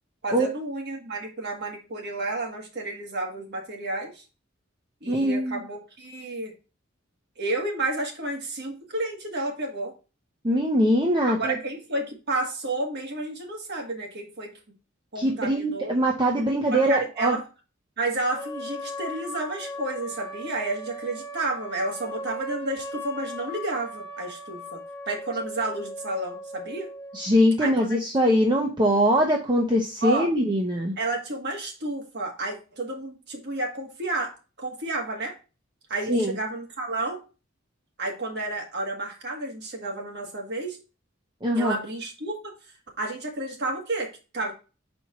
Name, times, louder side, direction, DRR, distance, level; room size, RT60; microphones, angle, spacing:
voice 1, 0.2-4.3 5.0-6.5 7.4-9.9 11.3-14.5 15.1-15.9 16.7-17.4 18.0-24.8 25.1-26.9 27.6-28.0 30.0-30.3 31.0-35.4 35.9-37.2 38.0-40.8 41.5-42.5 43.0-44.5, right 2 dB, 60° right, 1 dB, 1.8 m, -31 dB
voice 2, 5.1-5.6 10.4-11.6 15.2-17.4 27.1-31.0 36.1-36.4 41.4-41.8, equal, 25° right, 0 dB, 0.8 m, -22 dB
sound 1, 18.3-27.3, left 1 dB, 15° left, 1.0 m, -38 dB
4.5 x 4.4 x 5.6 m, 0.32 s
head